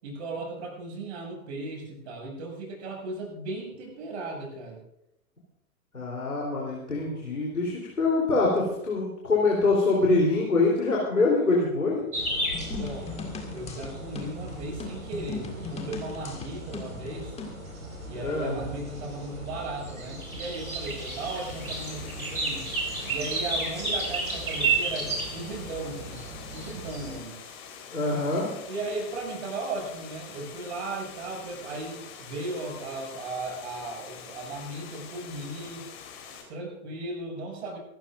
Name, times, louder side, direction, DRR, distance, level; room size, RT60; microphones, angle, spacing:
voice 1, 0.0-4.8 12.6-13.1 13.5-17.3 18.0-22.7 23.0-26.2 26.5-27.4 28.7-35.8 36.5-37.8, right 2 dB, 50° right, 0 dB, 6.8 m, -36 dB
voice 2, 5.9-12.0 18.2-18.6 27.9-28.5, left 3 dB, 80° left, -3 dB, 3.7 m, -24 dB
sound 1, 12.1-27.2, right 3 dB, 75° right, 5.2 m, -33 dB
sound 2, 12.5-17.6, left 5 dB, 15° left, 2.0 m, -39 dB
Water, 19.9-36.4, left 7 dB, 40° left, 4.3 m, -45 dB
24.5 x 13.5 x 2.6 m, 0.84 s
figure-of-eight pair, 105°, 43 cm